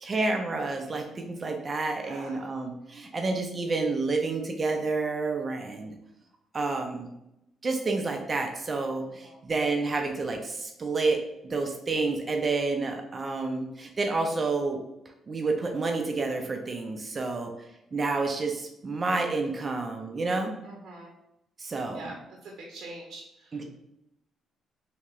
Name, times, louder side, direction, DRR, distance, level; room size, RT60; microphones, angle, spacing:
voice 1, 0.0-6.0 6.5-7.1 7.6-14.8 15.3-20.6 21.6-22.1 23.5-23.6, right 3 dB, 35° right, 3 dB, 0.5 m, -29 dB
voice 2, 2.0-2.5 9.2-9.4 20.6-21.1 21.9-22.1 22.4-23.6, right 2 dB, 70° right, -1 dB, 0.7 m, -44 dB
3.4 x 2.8 x 3.1 m, 0.85 s
cardioid pair, 90°, 0 cm